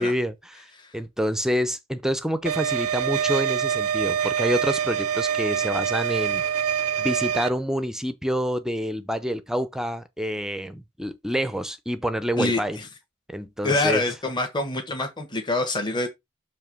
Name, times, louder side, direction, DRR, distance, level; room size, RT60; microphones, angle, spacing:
voice 1, 0.0-0.7 0.9-6.4 7.0-12.8 13.3-14.0, equal, 5° right, 0.6 m, -27 dB
sound 1, 2.5-7.5, right 8 dB, 85° right, 0.4 m, -25 dB
voice 2, 12.3-12.9 13.6-16.1, left 2 dB, 20° left, 1.4 m, -26 dB
7.1 x 3.0 x 6.0 m
head